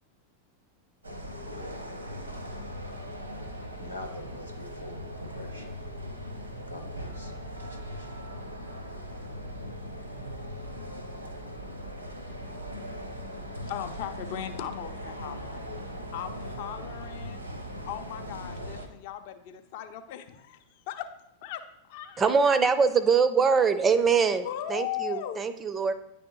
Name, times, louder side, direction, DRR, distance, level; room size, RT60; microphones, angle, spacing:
sound 1, 1.0-18.9, equal, 85° right, 0.8 m, -39 dB
voice 1, 3.8-5.7 6.7-8.1, left 1 dB, 85° left, 2 dB, 0.8 m, -45 dB
voice 2, 13.6-15.7 16.1-17.5 17.8-21.1 21.4-22.7 24.4-25.4, left 11 dB, 50° left, 9 dB, 0.5 m, -38 dB
voice 3, 22.2-25.9, right 5 dB, 20° right, 12 dB, 0.4 m, -23 dB
9.6 x 3.4 x 3.0 m, 0.84 s
figure-of-eight pair, 90°, 0 cm